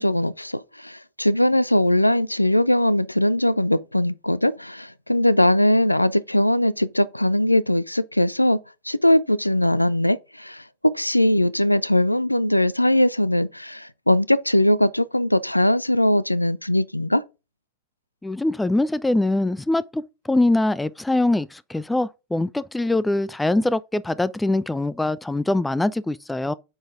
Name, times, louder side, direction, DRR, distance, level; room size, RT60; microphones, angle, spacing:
voice 1, 0.0-8.6 8.9-17.2, left 1 dB, 85° left, 0.3 m, -20 dB
voice 2, 18.2-26.5, left 2 dB, 5° left, 0.3 m, -23 dB
8.8 x 3.9 x 3.7 m
figure-of-eight pair, 90°, 0 cm